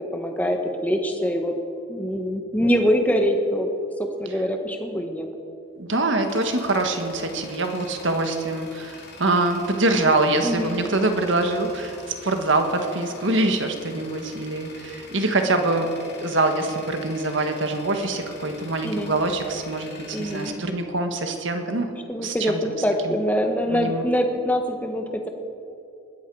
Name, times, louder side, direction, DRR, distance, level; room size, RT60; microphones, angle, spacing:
voice 1, 0.0-1.5 1.9-3.7 4.0-5.3 10.4-10.8 18.8-19.2 20.1-20.5 22.1-25.3, equal, 10° left, 4 dB, 1.3 m, -24 dB
Tools, 5.7-21.5, left 3 dB, 50° left, 2.7 m, -44 dB
voice 2, 5.8-15.9 16.2-21.9 22.2-22.7 23.0-23.1 23.7-24.0, right 2 dB, 65° right, 5 dB, 1.6 m, -24 dB
20.5 x 14.0 x 4.8 m, 2.7 s
head